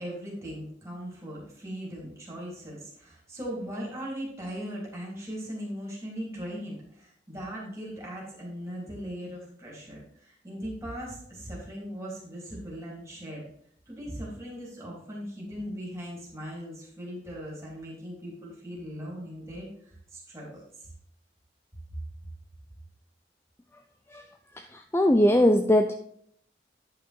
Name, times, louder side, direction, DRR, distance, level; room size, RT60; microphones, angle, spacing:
voice 1, 0.0-13.4 13.9-19.7 20.1-20.9, equal, 15° right, -4 dB, 3.5 m, -39 dB
voice 2, 24.5-25.9, left 1 dB, 15° left, 6 dB, 0.4 m, -21 dB
9.9 x 5.8 x 4.6 m, 0.66 s
head